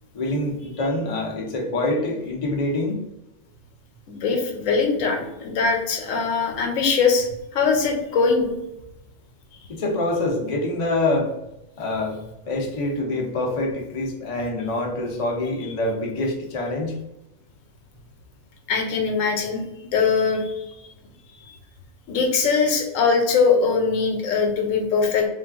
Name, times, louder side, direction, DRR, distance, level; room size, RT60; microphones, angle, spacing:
voice 1, 0.1-3.0 9.7-11.3 11.8-16.9, left 2 dB, 55° left, 1 dB, 0.3 m, -25 dB
voice 2, 4.1-7.3 7.5-8.5 18.7-19.6 19.9-20.7 21.4-21.5 22.1-25.3, left 5 dB, 85° left, 3 dB, 1.0 m, -21 dB
3.2 x 2.3 x 2.3 m, 0.91 s
omnidirectional pair, 1.3 m